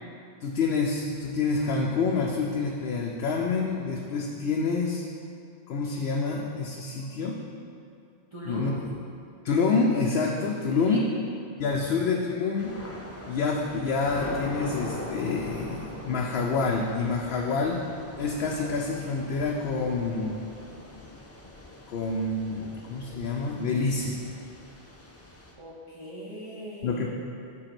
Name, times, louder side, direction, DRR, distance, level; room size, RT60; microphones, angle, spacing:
voice 1, 0.4-5.0 5.7-7.4 8.4-8.8 9.4-11.1 11.6-12.7 13.3-17.9 18.2-20.4 21.9-24.2 26.8-27.1, left 4 dB, 70° left, -1 dB, 0.8 m, -27 dB
voice 2, 8.3-8.7 10.7-11.1 25.6-27.1, right 1 dB, 30° right, -8 dB, 0.9 m, -40 dB
Thunder / Rain, 12.6-25.5, left 1 dB, 20° left, 0.4 m, -41 dB
7.7 x 3.8 x 5.9 m, 2.5 s
omnidirectional pair, 1.1 m